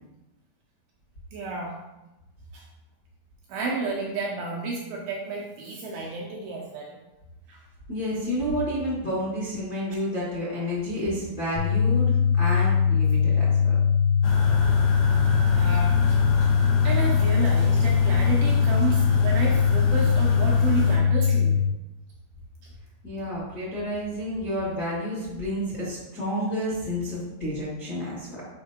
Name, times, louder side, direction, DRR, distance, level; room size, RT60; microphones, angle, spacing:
voice 1, 1.3-1.7 2.5-2.6 3.5-7.0 7.5-7.6 15.5-16.2 16.5-21.6, right 4 dB, 75° right, -2 dB, 2.4 m, -31 dB
voice 2, 7.9-13.8 23.0-28.4, equal, 45° left, -9 dB, 1.3 m, -30 dB
sound 1, 11.5-21.6, left 7 dB, 20° left, 0.8 m, -21 dB
sound 2, 14.2-21.0, left 1 dB, 75° left, 1.8 m, -31 dB
7.2 x 5.6 x 2.9 m, 0.98 s
omnidirectional pair, 5.0 m